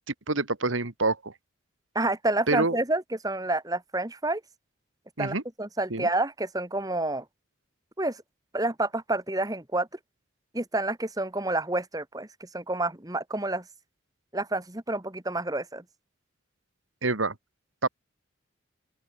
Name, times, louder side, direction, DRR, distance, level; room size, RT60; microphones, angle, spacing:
voice 1, 0.3-1.3 2.5-2.8 5.2-5.4 5.9-6.1 17.0-17.3 17.8-17.9, right 3 dB, 75° right, 2.1 m, -26 dB
voice 2, 1.9-4.4 5.2-7.2 8.0-8.2 8.5-9.9 10.5-12.3 12.5-13.6 14.3-15.8, right 2 dB, 20° right, 1.6 m, -29 dB
open air
head